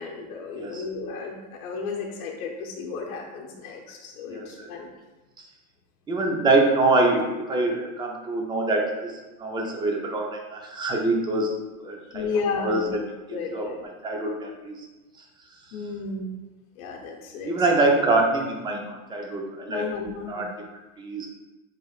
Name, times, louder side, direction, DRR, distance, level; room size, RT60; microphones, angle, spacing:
voice 1, 0.0-4.9 12.0-12.9 13.3-13.8 15.7-16.3 16.8-17.6 19.7-20.5, left 4 dB, 85° left, 0 dB, 0.9 m, -33 dB
voice 2, 4.3-4.7 5.4-5.5 6.1-9.1 9.4-11.5 11.8-12.3 12.6-13.0 13.3-13.7 14.0-14.9 17.4-20.5 21.0-21.3, right 2 dB, 10° right, 0 dB, 0.5 m, -25 dB
6.6 x 3.3 x 2.4 m, 1.1 s
supercardioid pair, 140°, 42 cm